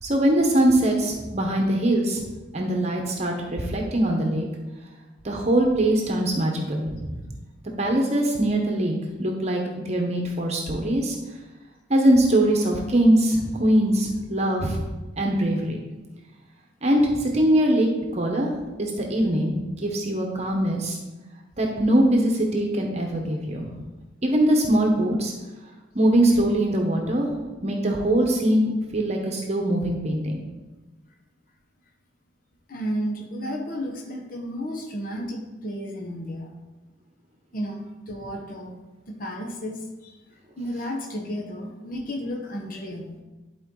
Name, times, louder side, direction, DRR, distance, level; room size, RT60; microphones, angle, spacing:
voice 1, 0.0-2.2 2.5-4.5 5.2-7.3 7.8-11.2 11.9-14.8 15.2-15.8 16.8-17.9 18.1-18.5 18.8-21.0 21.6-23.7 24.2-25.3 25.9-27.3 27.6-30.4, right 1 dB, 35° right, 1 dB, 0.9 m, -22 dB
voice 2, 32.7-36.5 37.5-38.8 39.1-43.2, equal, 50° left, 1 dB, 1.0 m, -33 dB
11.5 x 4.4 x 3.8 m, 1.2 s
head